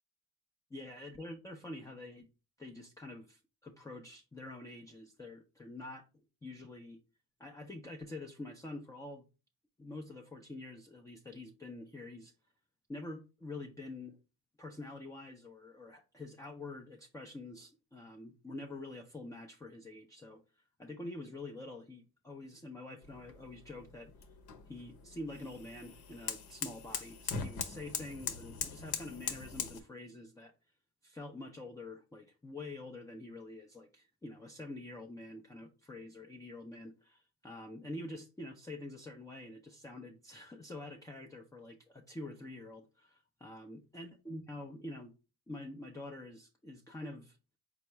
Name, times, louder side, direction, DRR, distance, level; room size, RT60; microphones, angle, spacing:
voice 1, 0.7-2.3 2.6-6.1 6.4-7.0 7.4-9.3 9.8-12.3 12.9-14.2 14.6-20.4 20.8-24.1 24.7-30.5 31.0-45.1 45.5-47.4, left 2 dB, 10° left, 0.5 m, -46 dB
sound 1, 23.0-29.8, left 6 dB, 60° left, 0.9 m, -42 dB
4.5 x 2.1 x 4.3 m
cardioid pair, 85°, 42 cm